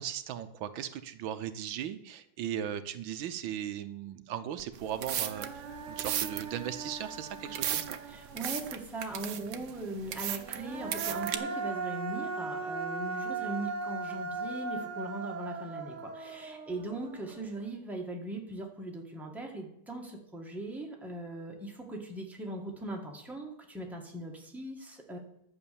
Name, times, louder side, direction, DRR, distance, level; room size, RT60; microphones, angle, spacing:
voice 1, 0.0-8.0, right 10 dB, 80° right, 10 dB, 1.5 m, -38 dB
Human voice, 4.6-4.7 5.0-8.7 10.4-17.6, right 4 dB, 45° right, 1.1 m, -38 dB
sound 1, 4.7-11.4, right 10 dB, 65° right, 1.4 m, -36 dB
voice 2, 8.1-25.2, right 1 dB, ahead, 0 dB, 1.9 m, -40 dB
11.0 x 7.8 x 7.0 m, 0.77 s
omnidirectional pair, 2.2 m